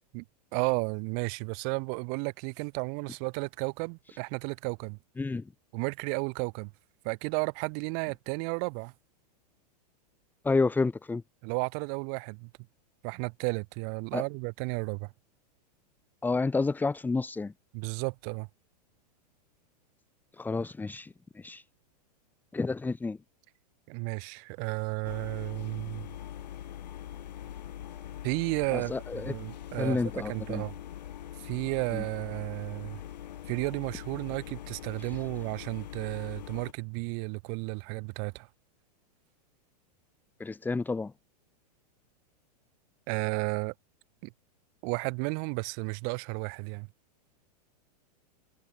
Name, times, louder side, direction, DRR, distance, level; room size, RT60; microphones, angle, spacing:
voice 1, 0.5-5.0 5.7-6.7 7.0-8.9 11.4-12.5 13.0-15.1 17.7-18.5 23.9-26.1 28.2-30.8 31.4-33.0 33.5-38.5 43.1-43.7 44.2-44.3 44.8-46.9, right 40 dB or more, 45° right, 2.8 m, -33 dB
voice 2, 10.4-11.2 14.1-14.2 16.2-17.5 20.4-21.6 22.5-23.2 28.7-29.3 29.8-30.6 31.9-32.0 35.0-35.1 40.4-41.1, left 3 dB, 10° left, 2.2 m, -30 dB
sound 1, 25.0-36.7, left 11 dB, 80° left, 5.8 m, -43 dB
hypercardioid pair, 135°, 21 cm